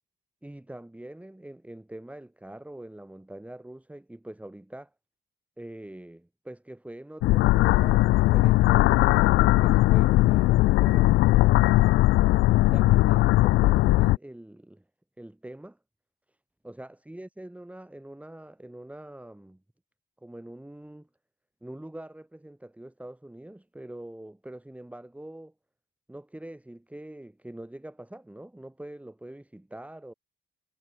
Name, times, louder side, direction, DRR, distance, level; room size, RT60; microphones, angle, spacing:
voice 1, 0.4-4.9 5.6-11.3 12.7-14.8 15.2-15.8 16.6-19.6 20.2-21.1 21.6-25.5 26.1-30.1, right 1 dB, 5° right, 3.0 m, -44 dB
sound 1, 7.2-14.2, left 18 dB, 90° left, 0.6 m, -19 dB
cardioid pair, 90°, 20 cm